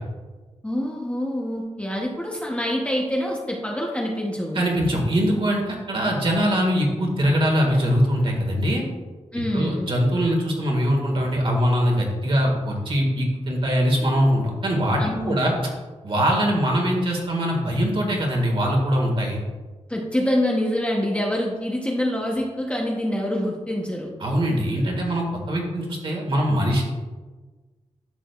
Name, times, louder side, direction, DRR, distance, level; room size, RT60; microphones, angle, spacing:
voice 1, 0.6-4.6 9.3-9.9 15.0-15.5 19.9-24.1, left 1 dB, 10° left, -2 dB, 0.8 m, -26 dB
voice 2, 4.5-8.8 9.5-15.5 16.0-19.4 24.2-26.8, equal, 45° right, 0 dB, 1.8 m, -22 dB
11.0 x 7.4 x 2.4 m, 1.3 s
wide cardioid pair, 175°, 12 cm